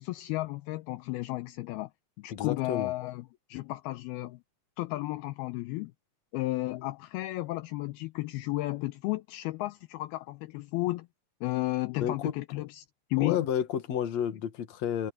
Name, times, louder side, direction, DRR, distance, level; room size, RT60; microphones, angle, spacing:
voice 1, 0.0-1.9 2.2-4.4 4.8-5.9 6.3-11.1 11.4-12.8 13.1-13.4, left 19 dB, 80° left, 2.5 m, -33 dB
voice 2, 2.3-2.9 12.0-12.3 13.2-15.1, left 9 dB, 50° left, 2.6 m, -30 dB
omnidirectional pair, 4.7 m